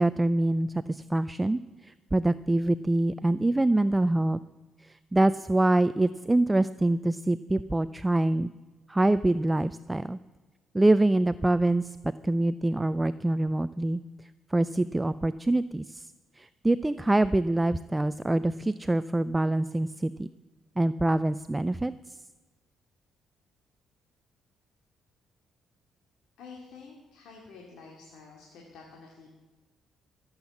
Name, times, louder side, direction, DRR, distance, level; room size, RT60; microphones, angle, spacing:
voice 1, 0.0-4.4 5.1-8.5 8.9-10.2 10.7-12.0 12.2-14.0 14.5-16.1 16.4-20.3 20.8-21.9, right 2 dB, 15° right, 14 dB, 0.4 m, -25 dB
voice 2, 26.4-29.3, left 4 dB, 80° left, -1 dB, 2.4 m, -49 dB
16.0 x 8.1 x 7.1 m, 1.3 s
cardioid pair, 90°, 0 cm